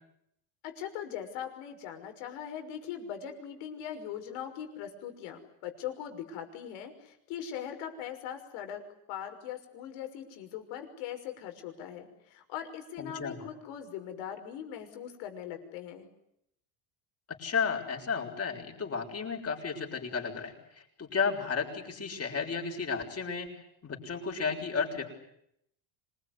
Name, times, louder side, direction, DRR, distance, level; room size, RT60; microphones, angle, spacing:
voice 1, 0.6-8.8 9.1-16.1, left 9 dB, 80° left, 6 dB, 6.1 m, -40 dB
voice 2, 13.0-13.4 17.3-20.5 21.0-23.5 23.8-25.0, left 5 dB, 30° left, 3 dB, 6.8 m, -33 dB
26.5 x 21.0 x 9.9 m, 0.75 s
cardioid pair, 120°, 47 cm